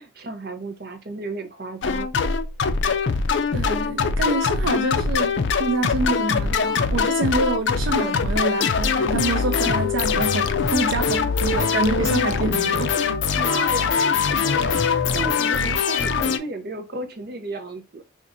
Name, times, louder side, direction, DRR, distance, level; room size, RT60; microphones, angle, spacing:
voice 1, 0.0-2.1 13.4-14.0 14.3-18.0, right 2 dB, 50° right, 0.7 m, -33 dB
sound 1, 1.8-16.4, left 5 dB, 75° left, 0.4 m, -22 dB
voice 2, 3.5-12.9, right 3 dB, 90° right, 0.5 m, -26 dB
4.3 x 2.5 x 2.6 m
head